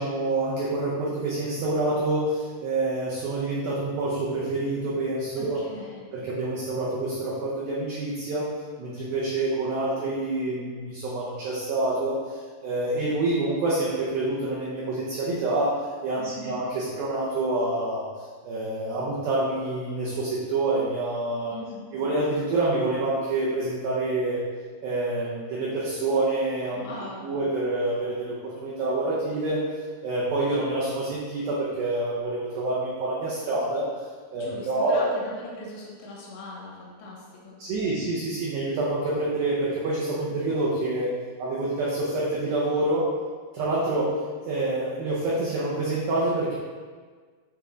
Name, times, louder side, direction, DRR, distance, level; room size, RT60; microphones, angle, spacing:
voice 1, 0.0-5.7 6.1-8.5 8.8-18.1 18.4-21.6 21.9-24.4 24.8-26.9 27.2-29.6 30.0-33.9 34.3-35.0 37.6-43.1 43.5-44.2 44.5-46.5, right 2 dB, 75° right, -6 dB, 2.2 m, -27 dB
voice 2, 5.4-6.0 16.2-16.6 21.5-21.9 26.7-27.3 34.3-37.6, left 2 dB, 75° left, -4 dB, 3.4 m, -40 dB
9.6 x 3.6 x 3.8 m, 1.5 s
omnidirectional pair, 5.3 m